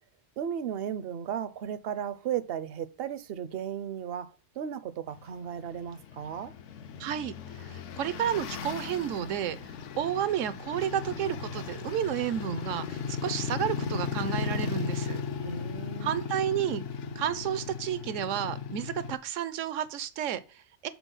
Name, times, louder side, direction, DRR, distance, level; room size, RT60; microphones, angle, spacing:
voice 1, 0.4-6.5 15.4-16.1, right 9 dB, 60° right, 0.7 m, -35 dB
sound 1, 5.1-19.2, left 6 dB, 70° left, 0.9 m, -36 dB
voice 2, 7.0-9.6 10.0-15.2 16.0-16.8 17.2-20.9, right 10 dB, 80° right, 1.0 m, -31 dB
6.1 x 3.8 x 5.3 m
omnidirectional pair, 1.3 m